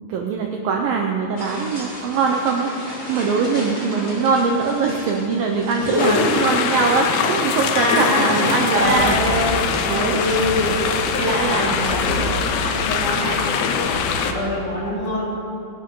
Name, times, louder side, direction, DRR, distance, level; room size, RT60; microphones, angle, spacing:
voice 1, 0.1-9.5 9.9-10.2 11.4-11.8 12.2-12.3, right 4 dB, 75° right, 1 dB, 2.2 m, -22 dB
sound 1, 1.4-13.9, equal, 10° left, 3.3 m, -36 dB
voice 2, 5.8-6.4 7.7-12.2 12.6-13.5 13.9-14.0 14.2-15.3, left 1 dB, 45° left, -7 dB, 5.8 m, -24 dB
sound 2, 6.0-14.3, left 6 dB, 80° left, 3.1 m, -23 dB
sound 3, 8.7-14.8, right 1 dB, 60° left, 4.1 m, -33 dB
27.5 x 12.5 x 3.9 m, 2.8 s
omnidirectional pair, 5.2 m